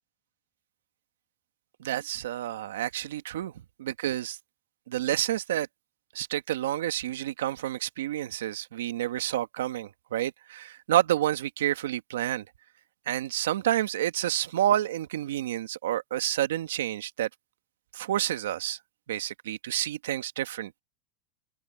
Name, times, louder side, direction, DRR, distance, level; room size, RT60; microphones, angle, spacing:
voice 1, 1.8-3.5 3.8-4.4 4.9-5.7 6.1-12.4 13.1-17.3 17.9-18.8 19.1-20.8, right 12 dB, 90° right, 1.4 m, -29 dB
open air
supercardioid pair, 145°, 0 cm